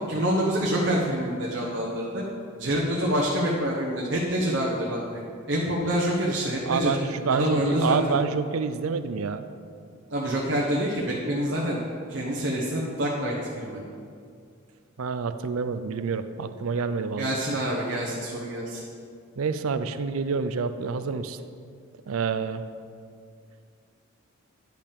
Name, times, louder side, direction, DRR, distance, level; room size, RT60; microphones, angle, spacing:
voice 1, 0.1-2.2 2.6-5.2 5.5-6.9 7.3-8.2 10.1-11.8 12.1-13.8 17.2-18.8, equal, 60° right, -3 dB, 1.0 m, -26 dB
voice 2, 6.6-9.4 15.0-17.4 19.4-21.4 22.1-22.6, right 5 dB, 85° right, 11 dB, 0.5 m, -28 dB
10.5 x 5.5 x 5.2 m, 2.3 s
head